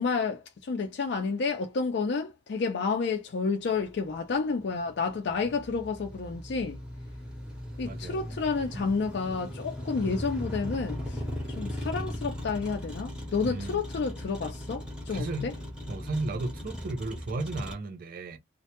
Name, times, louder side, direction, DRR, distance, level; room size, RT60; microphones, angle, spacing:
voice 1, 0.0-6.8 7.8-11.2 11.6-15.5, left 4 dB, 55° left, 0.4 m, -30 dB
Motor vehicle (road), 3.7-17.7, equal, 5° right, 0.6 m, -38 dB
voice 2, 7.9-8.4 8.7-8.9 13.4-13.8 15.1-15.6 15.9-18.4, right 2 dB, 45° right, 0.4 m, -35 dB
2.1 x 2.1 x 2.8 m
head